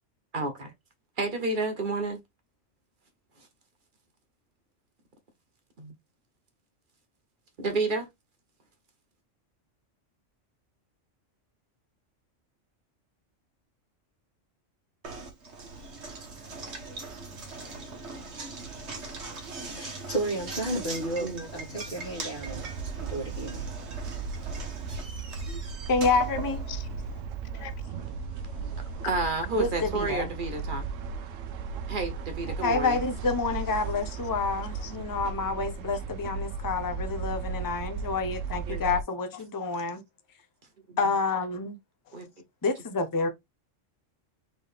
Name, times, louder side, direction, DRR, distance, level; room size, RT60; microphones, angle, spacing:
voice 1, 0.3-0.7 1.2-2.2 5.8-5.9 7.6-8.1 21.2-21.5 29.1-30.8 31.9-33.0 38.7-38.9 40.9-41.0 42.1-42.2, right 3 dB, 45° right, 1.0 m, -30 dB
Knock, 15.0-27.2, right 3 dB, 60° right, 1.6 m, -41 dB
voice 2, 19.6-22.7 23.0-23.7, right 2 dB, 35° left, 1.8 m, -33 dB
sound 1, 22.4-39.0, right 5 dB, 85° right, 1.0 m, -36 dB
voice 3, 25.9-26.6 29.6-30.3 32.6-40.0 41.0-41.8 42.6-43.3, left 4 dB, 20° left, 0.6 m, -28 dB
voice 4, 26.7-27.2 27.5-29.1 32.5-32.6 34.8-34.9 39.7-39.8 42.1-42.2, left 11 dB, 75° left, 0.9 m, -46 dB
4.0 x 3.7 x 3.4 m
omnidirectional pair, 1.3 m